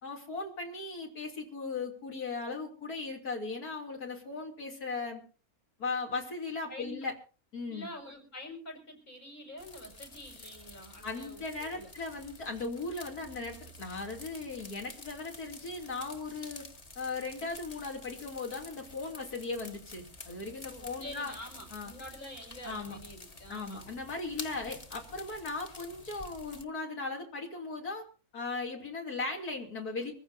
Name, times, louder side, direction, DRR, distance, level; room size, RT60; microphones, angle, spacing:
voice 1, 0.0-5.2 5.8-7.1 7.5-7.9 11.0-16.7 17.0-21.3 21.7-21.9 22.6-23.0 23.5-28.1 28.3-30.1, left 3 dB, 85° left, 0 dB, 3.5 m, -38 dB
voice 2, 7.7-11.9 20.7-24.0, equal, 70° left, 0 dB, 5.8 m, -47 dB
sound 1, 9.6-26.6, left 2 dB, 30° left, 1.1 m, -49 dB
25.5 x 15.0 x 2.7 m, 0.36 s
omnidirectional pair, 1.6 m